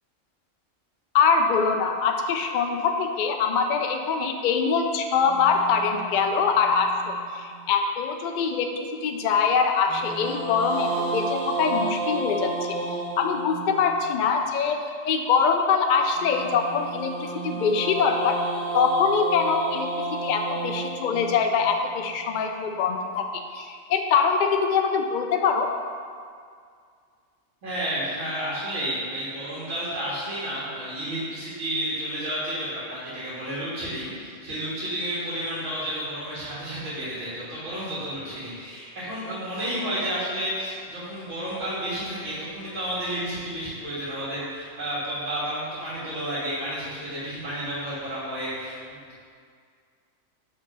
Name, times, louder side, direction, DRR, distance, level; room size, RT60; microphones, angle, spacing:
voice 1, 1.1-12.5 12.9-18.4 18.7-19.9 20.2-23.2 23.5-25.7, left 5 dB, 65° left, 4 dB, 0.4 m, -23 dB
sound 1, 5.2-7.6 9.9-14.0 16.2-22.4, right 2 dB, 25° right, 1.3 m, -32 dB
voice 2, 27.6-49.2, right 1 dB, 70° right, -10 dB, 2.2 m, -31 dB
5.1 x 4.1 x 5.5 m, 2.1 s
omnidirectional pair, 1.3 m